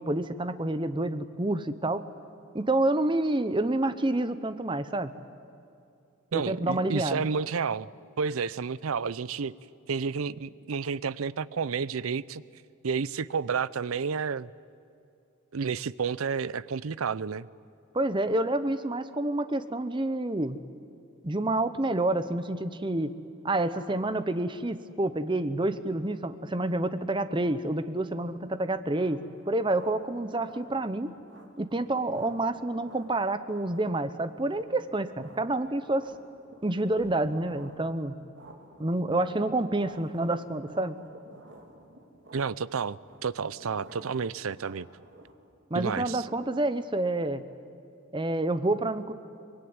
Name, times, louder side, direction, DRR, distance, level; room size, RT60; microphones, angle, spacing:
voice 1, 0.0-2.0 2.5-5.1 6.3-7.2 17.9-20.6 21.2-23.1 23.4-31.1 31.6-36.1 36.6-38.1 38.8-41.0 45.7-47.4 48.1-49.1, right 2 dB, 25° right, 12 dB, 0.8 m, -28 dB
voice 2, 6.3-7.9 8.2-9.5 9.9-12.4 12.8-14.5 15.5-17.5 42.3-44.9 45.7-46.3, right 5 dB, 90° right, 19 dB, 0.6 m, -30 dB
sound 1, 28.6-45.3, right 1 dB, 60° right, 3.4 m, -54 dB
24.5 x 21.5 x 9.6 m, 2.6 s
head